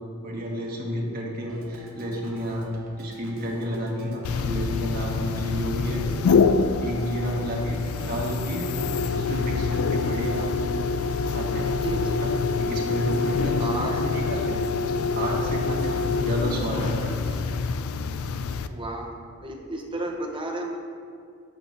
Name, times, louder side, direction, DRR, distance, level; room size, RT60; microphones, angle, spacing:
voice 1, 0.2-2.7 3.0-6.0 6.4-6.5 6.8-8.7 9.1-10.5 11.3-12.3 12.6-14.6 15.1-17.1, equal, 45° right, -2 dB, 1.4 m, -31 dB
Organ, 1.5-17.5, right 1 dB, 70° right, 0.8 m, -48 dB
sound 1, 4.2-18.7, left 4 dB, 75° left, 0.3 m, -26 dB
voice 2, 11.8-12.2 13.5-14.3 15.9-16.1 18.7-19.1 19.4-20.8, right 1 dB, 25° right, 0 dB, 0.9 m, -33 dB
11.5 x 6.5 x 2.7 m, 2.3 s
head